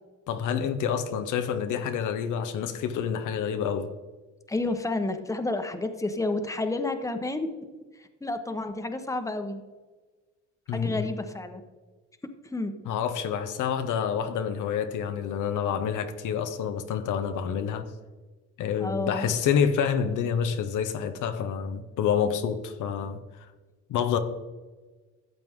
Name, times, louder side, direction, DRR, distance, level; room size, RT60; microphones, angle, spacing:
voice 1, 0.3-3.9 10.7-11.1 12.8-17.9 18.6-23.2 23.9-24.2, left 7 dB, 80° left, 0.9 m, -28 dB
voice 2, 4.5-7.5 8.0-9.6 10.7-11.6 12.5-12.7 18.8-19.3, left 2 dB, 10° left, 1.0 m, -30 dB
13.5 x 7.7 x 3.7 m
cardioid pair, 90°, 30 cm